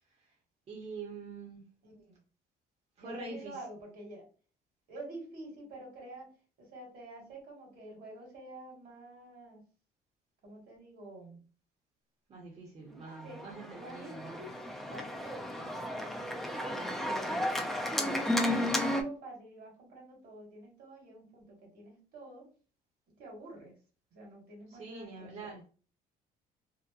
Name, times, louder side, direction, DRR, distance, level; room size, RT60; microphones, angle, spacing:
voice 1, 0.7-1.6 3.0-3.5 12.3-14.5 18.4-18.7 24.7-25.7, right 3 dB, 40° right, -2 dB, 0.8 m, -45 dB
voice 2, 1.8-2.2 3.0-4.3 4.9-9.6 10.4-11.4 13.2-13.4 13.7-14.5 14.8-17.6 17.9-22.5 23.2-23.7 24.1-25.5, right 2 dB, 65° right, -1 dB, 1.5 m, -48 dB
Organ, 13.2-19.0, left 1 dB, ahead, 0.4 m, -33 dB
2.7 x 2.1 x 2.3 m, 0.37 s
cardioid pair, 110°, 17 cm